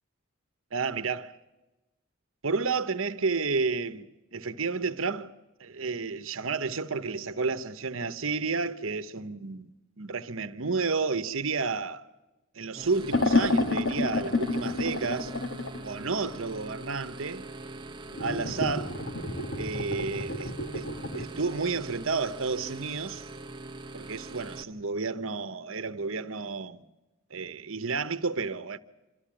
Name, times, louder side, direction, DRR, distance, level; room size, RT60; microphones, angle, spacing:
voice 1, 0.7-1.4 2.4-5.3 5.6-12.1 12.5-15.3 15.8-17.5 18.2-19.0 19.5-20.9 21.1-23.3 23.9-26.8 27.3-28.8, right 4 dB, 65° right, 1.1 m, -31 dB
sound 1, 12.7-24.6, right 2 dB, 20° right, 0.9 m, -43 dB
sound 2, 13.1-15.8 18.1-21.3, left 2 dB, 60° left, 1.9 m, -29 dB
26.5 x 14.0 x 8.9 m
head